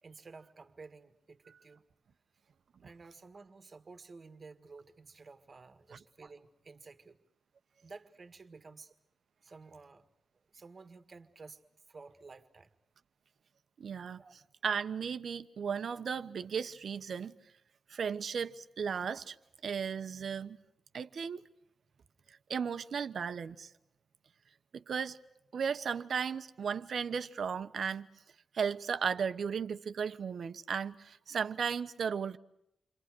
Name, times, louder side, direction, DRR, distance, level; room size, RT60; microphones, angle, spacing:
voice 1, 0.0-1.8 2.8-7.2 7.8-8.9 9.4-10.1 10.5-11.6 11.9-12.7 14.2-14.3, right 4 dB, 35° right, 1.7 m, -53 dB
voice 2, 13.8-14.2 14.6-17.3 17.9-19.4 19.6-20.6 20.9-21.4 22.5-23.7 24.7-25.2 25.5-28.1 28.5-32.4, right 6 dB, 55° right, 1.1 m, -35 dB
29.0 x 26.0 x 6.2 m
wide cardioid pair, 180°, 0 cm